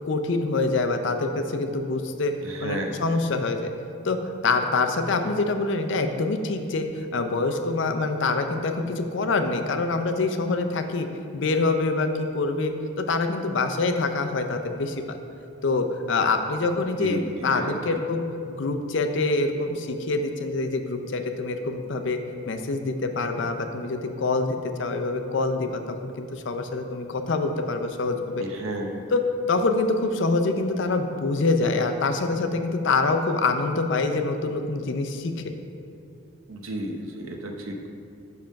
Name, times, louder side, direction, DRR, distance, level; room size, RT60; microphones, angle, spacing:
voice 1, 0.1-2.3 2.6-3.7 4.0-11.1 11.3-15.2 15.6-22.2 22.5-28.4 29.1-35.3, left 3 dB, 55° left, 6 dB, 0.5 m, -25 dB
voice 2, 2.4-3.0 17.0-18.0 28.4-29.0 36.5-37.9, right 1 dB, 70° right, 2 dB, 0.7 m, -33 dB
5.7 x 5.4 x 5.1 m, 2.5 s
head